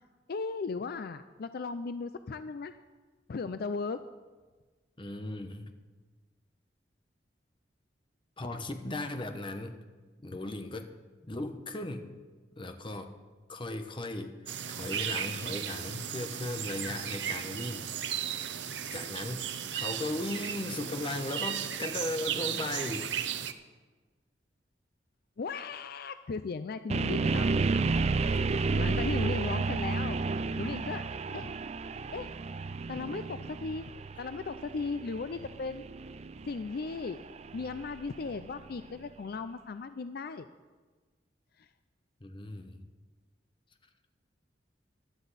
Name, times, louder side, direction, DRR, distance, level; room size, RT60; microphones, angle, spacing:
voice 1, 0.3-2.7 3.3-4.0 25.4-27.7 28.8-30.2 30.6-31.0 31.3-31.5 32.1-32.3 32.9-33.9 34.2-35.8 36.4-37.2 37.5-40.5, left 4 dB, 60° left, 11 dB, 0.4 m, -36 dB
voice 2, 5.0-5.7 8.4-9.8 10.2-10.9 11.3-12.1 12.6-13.1 13.5-14.4 14.7-17.9 18.9-23.1 28.3-28.5 42.2-42.8, left 2 dB, 30° left, 6 dB, 1.0 m, -37 dB
sound 1, 14.5-23.5, right 9 dB, 85° right, 0.8 m, -35 dB
sound 2, 26.9-38.9, right 4 dB, 35° right, 0.4 m, -32 dB
16.0 x 12.0 x 4.2 m, 1.3 s
head